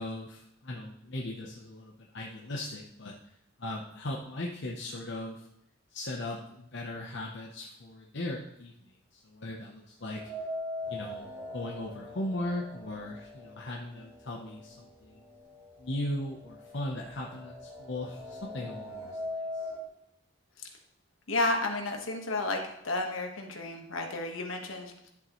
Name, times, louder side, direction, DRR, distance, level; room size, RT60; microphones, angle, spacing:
voice 1, 0.0-3.3 3.6-5.5 5.9-8.7 9.1-10.3 10.9-15.2 15.8-19.7, left 1 dB, 55° left, -1 dB, 0.8 m, -38 dB
sound 1, 10.0-14.1 14.4-14.5 15.5-15.6 16.0-19.8, left 1 dB, 15° right, 2.3 m, -41 dB
voice 2, 21.3-25.1, left 2 dB, 70° left, 3 dB, 1.4 m, -32 dB
11.0 x 7.3 x 3.1 m, 0.79 s
head